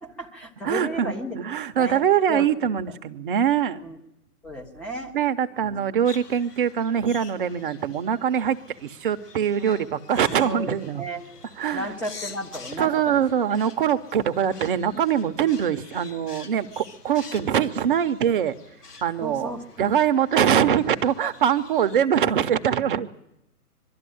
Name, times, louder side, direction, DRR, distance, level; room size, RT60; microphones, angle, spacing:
voice 1, 0.0-1.4 1.8-2.0 2.3-2.5 3.8-4.0 4.4-5.2 5.6-5.8 10.1-11.2 11.7-13.2 13.5-13.6 19.2-19.9, equal, 5° left, 1 dB, 0.8 m, -34 dB
voice 2, 0.6-3.8 5.1-11.0 11.6-11.9 12.8-18.6 19.0-19.5 19.8-23.1, right 9 dB, 35° right, 10 dB, 0.8 m, -23 dB
sound 1, 6.0-22.0, left 4 dB, 85° left, 2.0 m, -47 dB
22.5 x 13.0 x 10.0 m, 0.85 s
hypercardioid pair, 145°, 46 cm